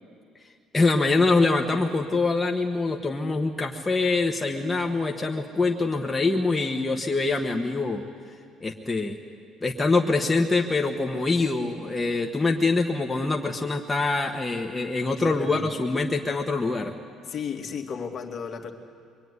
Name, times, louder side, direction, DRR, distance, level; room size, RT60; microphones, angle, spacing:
voice 1, 0.7-8.0 8.6-9.2 9.6-16.9, left 3 dB, 15° left, 2 dB, 1.4 m, -24 dB
voice 2, 15.2-15.7 17.3-18.7, left 6 dB, 45° left, 4 dB, 2.5 m, -34 dB
26.0 x 23.5 x 9.8 m, 2.2 s
cardioid pair, 130°, 0 cm